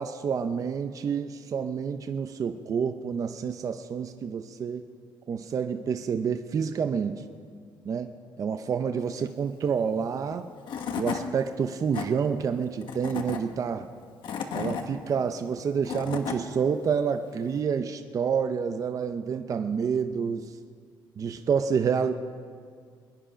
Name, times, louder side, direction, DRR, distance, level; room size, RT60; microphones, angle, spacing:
voice 1, 0.0-4.8 5.3-7.2 7.8-10.5 10.9-13.9 14.5-20.6 21.2-22.3, right 6 dB, 40° right, 8 dB, 0.6 m, -28 dB
Tools / Wood, 10.3-10.4 10.7-11.2 11.7-12.1 12.8-13.4 14.0-14.8 15.6-16.4, left 7 dB, 70° left, 1.3 m, -32 dB
22.5 x 10.0 x 5.1 m, 2.1 s
cardioid pair, 125°, 9 cm